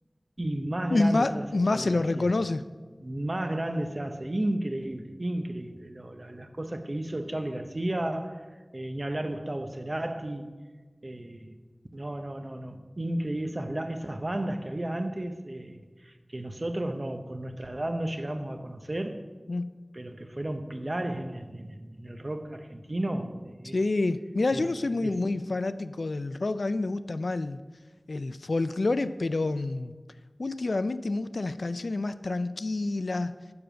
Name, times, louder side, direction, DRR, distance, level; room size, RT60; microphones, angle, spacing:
voice 1, 0.4-2.3 3.0-8.5 8.7-10.5 11.0-11.6 11.9-19.3 19.9-23.7 24.5-24.6 25.0-25.2, right 1 dB, 45° right, 0.7 m, -33 dB
voice 2, 0.9-2.6 19.5-19.8 23.7-27.6 28.1-29.9 30.4-33.4, left 2 dB, 85° left, 0.3 m, -28 dB
7.0 x 6.4 x 7.5 m
wide cardioid pair, 45°, 0 cm